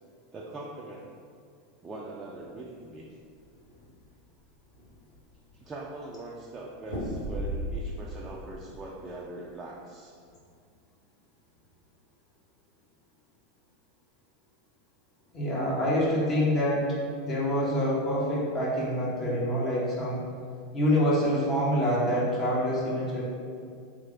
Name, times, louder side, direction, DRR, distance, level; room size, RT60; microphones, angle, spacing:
voice 1, 0.3-1.1 1.8-3.1 5.5-10.2, right 2 dB, 25° right, -3 dB, 0.4 m, -41 dB
sound 1, 3.0-3.9 4.4-4.5 4.7-5.4 6.8-8.1 8.4-8.9, right 1 dB, 85° left, 1.4 m, -35 dB
voice 2, 15.3-20.2 20.7-23.2, equal, 35° left, -6 dB, 1.2 m, -26 dB
3.2 x 2.6 x 3.8 m, 2.2 s
hypercardioid pair, 90°, 0 cm